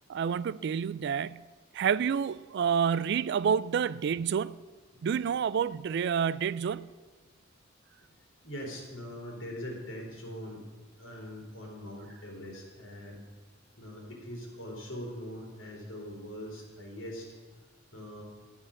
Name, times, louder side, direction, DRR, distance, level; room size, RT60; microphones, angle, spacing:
voice 1, 0.1-1.5 1.7-4.6 5.0-6.9, right 7 dB, 60° right, 0.3 m, -29 dB
voice 2, 8.4-10.6 11.0-13.2 13.8-17.4 17.9-18.2, equal, 90° left, 3.6 m, -42 dB
12.0 x 7.2 x 6.4 m
head